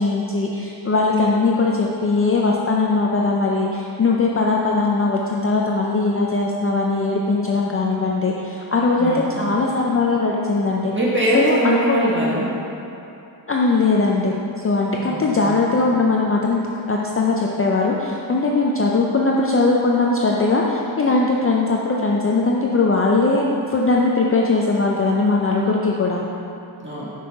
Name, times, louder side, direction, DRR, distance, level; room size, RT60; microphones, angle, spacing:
voice 1, 0.0-10.9 11.3-12.0 13.5-16.6 16.9-26.2, left 3 dB, 30° left, -2 dB, 0.4 m, -20 dB
voice 2, 9.0-9.5 10.9-12.5 15.0-15.5 26.8-27.1, right 1 dB, 25° right, -7 dB, 1.7 m, -22 dB
6.2 x 5.6 x 4.6 m, 2.8 s
wide cardioid pair, 155°, 46 cm